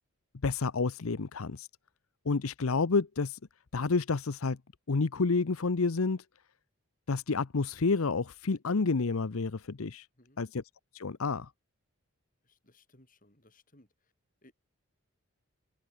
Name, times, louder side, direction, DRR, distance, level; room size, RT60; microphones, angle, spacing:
voice 1, 0.4-1.7 2.3-3.4 3.7-4.6 4.9-6.2 7.1-10.1 10.4-10.6 10.9-11.5, left 4 dB, 70° left, 0.7 m, -29 dB
voice 2, 12.4-14.1 14.4-14.5, left 1 dB, 35° left, 6.1 m, -62 dB
head